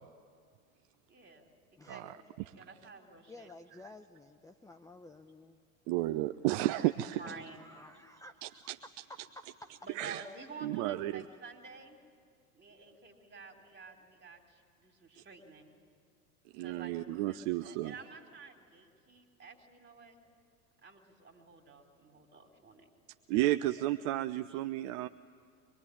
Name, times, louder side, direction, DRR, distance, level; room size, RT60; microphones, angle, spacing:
voice 1, 1.1-3.5 6.5-7.6 9.8-12.0 12.5-15.7 16.6-16.9 17.2-20.2 20.8-22.9 23.3-23.4 23.6-23.7 24.5-24.6, right 4 dB, 20° right, 4 dB, 3.9 m, -51 dB
voice 2, 3.3-5.6 7.2-8.6 13.7-13.8, left 2 dB, 5° left, 7 dB, 0.8 m, -53 dB
voice 3, 5.9-7.2 8.4-8.5 10.0-10.2 10.6-11.2 16.5-17.9 23.3-25.1, right 15 dB, 50° right, 11 dB, 0.7 m, -32 dB
24.5 x 22.0 x 9.9 m, 2.1 s
hypercardioid pair, 90°, 47 cm